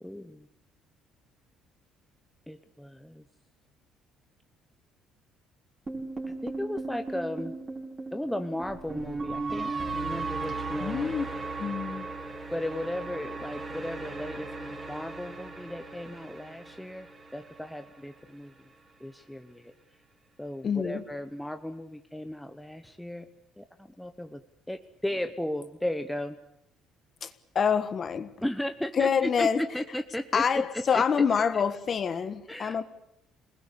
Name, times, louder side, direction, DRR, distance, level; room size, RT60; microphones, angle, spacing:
voice 1, 0.0-0.5 2.5-3.2 6.4-7.5 8.1-11.1 12.5-18.7 19.0-19.7 20.4-23.3 23.6-24.4 24.7-26.4 28.4-31.0 31.3-31.4 32.5-32.8, left 1 dB, ahead, 0.9 m, -35 dB
sound 1, 5.9-18.1, right 3 dB, 15° right, 4.9 m, -37 dB
voice 2, 10.8-11.2 11.6-12.1 20.6-21.0 27.2-28.3 29.0-29.6 30.3-32.8, left 6 dB, 30° left, 1.4 m, -26 dB
27.5 x 20.0 x 8.3 m
cardioid pair, 180°, 0 cm